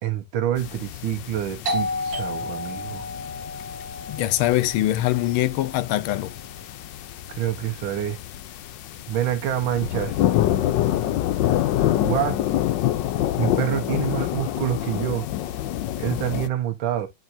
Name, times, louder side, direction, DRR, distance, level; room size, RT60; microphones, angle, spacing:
voice 1, 0.0-3.1 7.3-8.2 9.1-10.2 12.0-12.4 13.4-15.3 16.0-17.1, right 11 dB, 75° right, 1.9 m, -27 dB
sound 1, 0.6-16.5, left 12 dB, 70° left, 1.2 m, -27 dB
Doorbell, 1.7-7.0, left 2 dB, 55° right, 1.8 m, -33 dB
voice 2, 4.1-6.3, left 15 dB, 90° left, 1.5 m, -23 dB
9.4 x 4.4 x 2.7 m
omnidirectional pair, 2.2 m